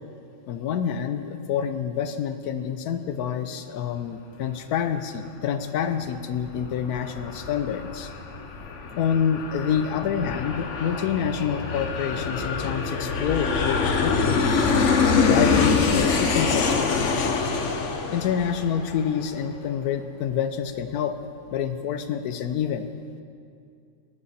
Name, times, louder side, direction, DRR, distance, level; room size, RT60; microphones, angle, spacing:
voice 1, 0.5-8.1 8.9-14.7 15.3-17.0 18.1-21.2 21.5-22.9, left 8 dB, 90° left, 9 dB, 1.3 m, -27 dB
Aircraft, 6.1-19.3, left 4 dB, 55° left, 1.1 m, -25 dB
18.5 x 10.0 x 4.3 m, 2.4 s
omnidirectional pair, 1.6 m